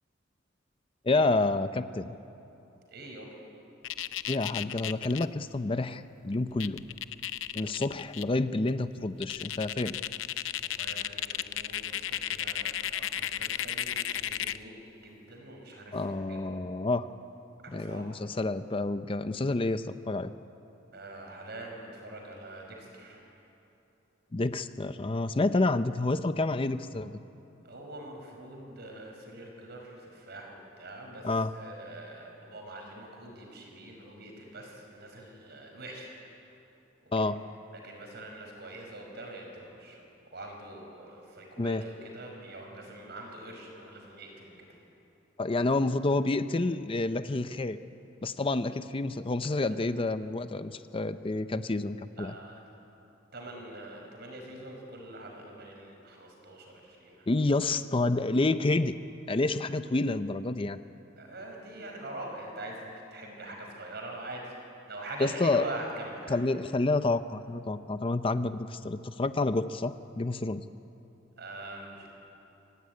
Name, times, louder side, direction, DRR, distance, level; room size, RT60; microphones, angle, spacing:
voice 1, 1.0-2.2 4.3-6.8 7.5-10.0 15.9-17.1 17.7-20.3 24.3-27.2 31.2-31.5 37.1-37.4 41.6-41.8 45.4-47.8 48.2-52.3 57.3-59.0 59.3-60.8 65.2-65.6 66.3-70.6, left 2 dB, 30° left, 11 dB, 0.5 m, -29 dB
voice 2, 2.9-3.4 7.8-7.9 10.6-14.8 15.0-16.4 17.6-18.2 20.9-23.2 27.6-36.1 37.0-37.1 37.7-40.0 40.3-44.5 52.2-52.6 53.3-57.3 61.2-64.5 64.9-66.4 71.4-72.1, right 1 dB, 55° right, 1 dB, 5.3 m, -44 dB
sound 1, 3.8-5.3 6.3-6.4 6.6-8.2 8.7-8.8 9.2-14.6, left 11 dB, 85° left, 0.6 m, -33 dB
25.0 x 16.5 x 9.5 m, 2.9 s
head